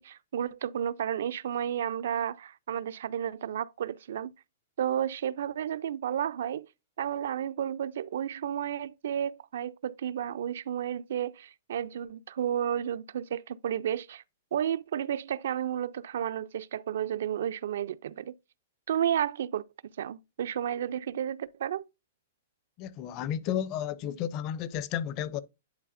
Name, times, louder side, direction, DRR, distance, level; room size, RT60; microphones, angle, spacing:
voice 1, 0.0-4.3 4.8-6.7 7.0-14.2 14.5-18.3 18.9-19.6 20.0-21.9, right 9 dB, 60° right, 0.4 m, -32 dB
voice 2, 22.8-25.4, left 10 dB, 25° left, 0.5 m, -32 dB
10.5 x 4.1 x 2.5 m
hypercardioid pair, 170°, 0 cm